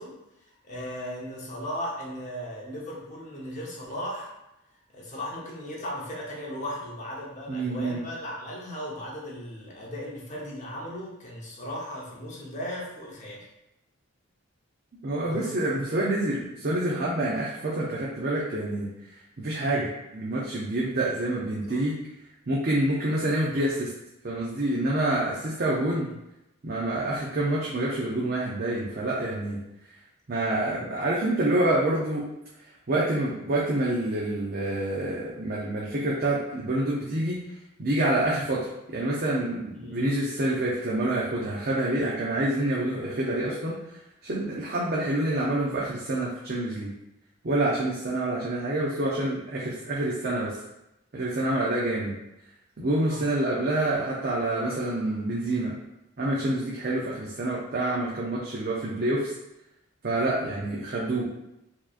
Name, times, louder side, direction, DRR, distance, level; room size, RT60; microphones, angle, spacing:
voice 1, 0.0-4.3 4.9-13.4 15.2-15.8 19.6-19.9 21.7-21.8 30.7-30.8 39.7-40.0 53.0-53.2 60.4-60.6, equal, 35° left, -3 dB, 0.9 m, -37 dB
voice 2, 7.5-8.0 15.0-18.9 19.4-22.0 22.5-23.9 24.2-26.1 26.6-29.6 30.3-32.3 32.9-37.4 37.8-43.8 44.2-46.9 47.4-50.5 51.1-52.1 52.8-55.7 56.2-59.3 60.0-61.3, right 1 dB, 45° right, -5 dB, 0.6 m, -27 dB
4.5 x 2.9 x 2.5 m, 0.88 s
head